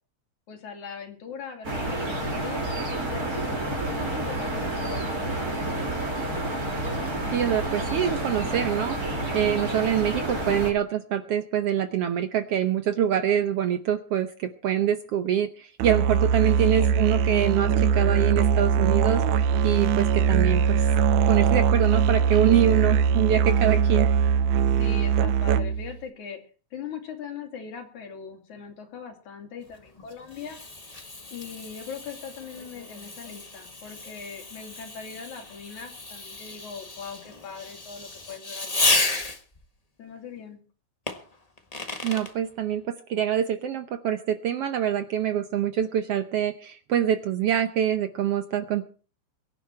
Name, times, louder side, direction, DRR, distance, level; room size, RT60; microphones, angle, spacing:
voice 1, 0.5-6.1 24.8-26.4 26.7-30.6 31.3-38.9 40.0-40.6, left 7 dB, 70° left, 5 dB, 3.9 m, -40 dB
sound 1, 1.6-10.7, right 1 dB, 30° right, 3.3 m, -29 dB
voice 2, 7.3-20.8 21.3-24.1 42.0-48.8, right 10 dB, 65° right, 10 dB, 1.6 m, -25 dB
Musical instrument, 15.8-25.9, right 7 dB, 90° right, 2.3 m, -21 dB
Fireworks, 29.7-39.6 41.1-42.3, left 2 dB, 25° left, 0.9 m, -32 dB
23.0 x 10.5 x 4.4 m, 0.39 s
omnidirectional pair, 3.5 m